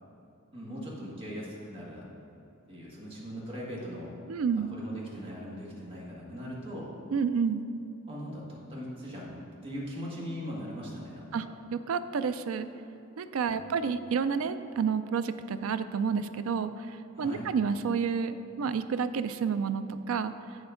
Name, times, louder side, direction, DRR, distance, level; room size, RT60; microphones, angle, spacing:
voice 1, 0.5-2.0 2.7-4.1 4.7-6.9 8.1-9.4 9.6-11.5 13.5-13.8 17.1-17.5, equal, 25° right, -5 dB, 1.8 m, -40 dB
voice 2, 4.3-4.7 7.1-7.7 11.3-11.4 11.7-12.7 13.2-20.3, right 6 dB, 75° right, 12 dB, 0.4 m, -30 dB
8.5 x 7.2 x 3.7 m, 2.8 s
head